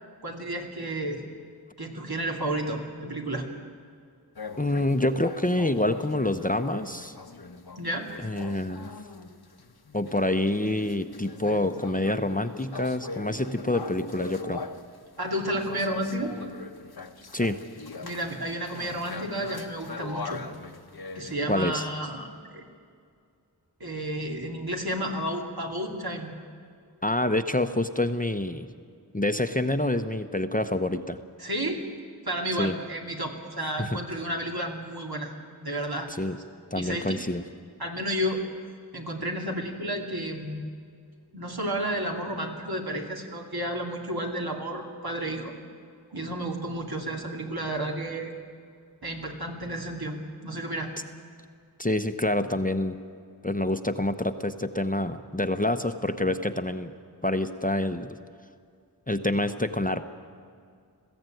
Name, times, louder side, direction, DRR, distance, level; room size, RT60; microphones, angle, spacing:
voice 1, 0.2-1.2 1.8-3.5 7.8-8.1 15.2-16.4 18.0-20.4 21.1-22.6 23.8-26.4 31.4-31.8 32.2-35.3 35.6-36.1 36.7-37.2 37.8-38.4 38.9-40.6 41.3-45.5 46.1-48.3 49.0-50.2 50.4-50.9 56.2-56.3, right 1 dB, 60° right, 1 dB, 2.8 m, -31 dB
sound 1, 4.3-15.0 15.4-21.3, left 4 dB, 65° left, 1.1 m, -41 dB
voice 2, 4.6-7.1 8.2-8.9 9.9-14.6 17.3-17.6 21.5-21.8 27.0-28.7 29.1-31.2 32.6-32.7 33.8-34.0 36.1-36.4 36.7-37.4 51.8-53.0 53.4-56.9 57.2-58.2 59.1-60.0, left 1 dB, 20° left, 8 dB, 0.9 m, -27 dB
21.0 x 15.5 x 9.2 m, 2.3 s
wide cardioid pair, 45°, 41 cm